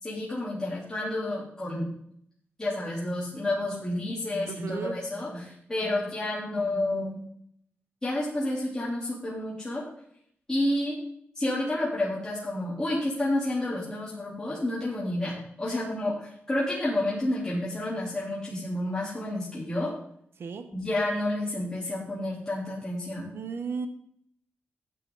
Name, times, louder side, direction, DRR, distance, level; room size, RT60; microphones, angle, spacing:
voice 1, 0.0-1.9 2.6-7.2 8.0-9.8 10.5-11.0 11.4-19.9 20.7-23.3, left 1 dB, 15° left, -8 dB, 3.8 m, -30 dB
voice 2, 4.5-5.0 15.7-15.8 20.4-20.7 23.3-23.9, right 5 dB, 70° right, 9 dB, 1.2 m, -35 dB
14.5 x 9.0 x 4.0 m, 0.68 s
wide cardioid pair, 110°, 4 cm